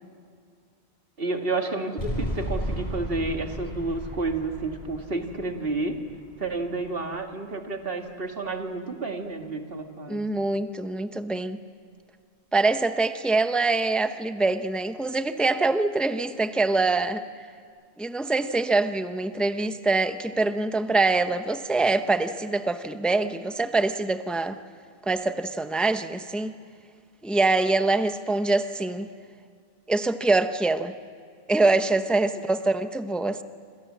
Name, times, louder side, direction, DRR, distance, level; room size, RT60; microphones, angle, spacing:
voice 1, 1.2-6.0 6.4-10.2, right 3 dB, 65° right, 4 dB, 2.3 m, -30 dB
sound 1, 2.0-7.1, equal, 45° left, 6.7 m, -35 dB
voice 2, 10.1-11.6 12.5-17.2 18.0-24.6 25.1-26.5 27.2-29.1 29.9-30.9 31.5-33.4, right 3 dB, ahead, 9 dB, 0.8 m, -24 dB
27.0 x 27.0 x 7.5 m, 2.2 s
omnidirectional pair, 1.0 m